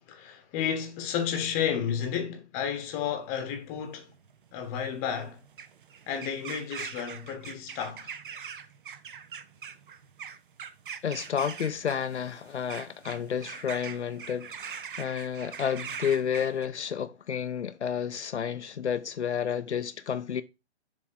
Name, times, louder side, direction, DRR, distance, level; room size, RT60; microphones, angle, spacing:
voice 1, 0.0-4.1 4.5-5.4 6.1-8.1, left 8 dB, 20° left, 1.1 m, -32 dB
sound 1, 3.3-16.7, right 7 dB, 45° right, 0.8 m, -42 dB
voice 2, 11.0-20.4, left 8 dB, 70° left, 0.6 m, -31 dB
7.3 x 3.6 x 5.6 m
figure-of-eight pair, 140°, 35 cm